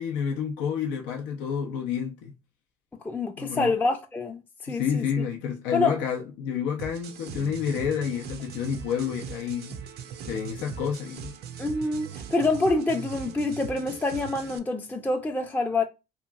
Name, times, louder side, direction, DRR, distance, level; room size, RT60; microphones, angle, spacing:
voice 1, 0.0-2.3 3.4-3.7 4.7-9.7 10.3-11.3, left 7 dB, 75° left, 0.5 m, -29 dB
voice 2, 3.0-5.0 5.7-6.0 11.6-15.8, left 3 dB, 10° left, 0.4 m, -26 dB
sound 1, 6.8-14.6, right 7 dB, 55° right, 0.5 m, -40 dB
2.9 x 2.4 x 2.2 m
hypercardioid pair, 70°, 20 cm